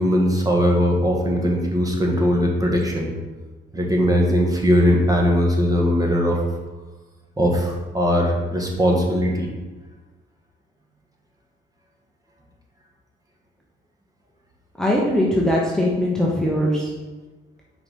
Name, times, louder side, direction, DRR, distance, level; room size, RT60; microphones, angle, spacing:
voice 1, 0.0-3.1 3.7-6.4 7.4-9.5, equal, 20° right, -1 dB, 1.4 m, -19 dB
voice 2, 14.8-16.9, left 1 dB, 5° left, -4 dB, 1.0 m, -20 dB
5.5 x 4.0 x 5.4 m, 1.2 s
cardioid pair, 90°, 20 cm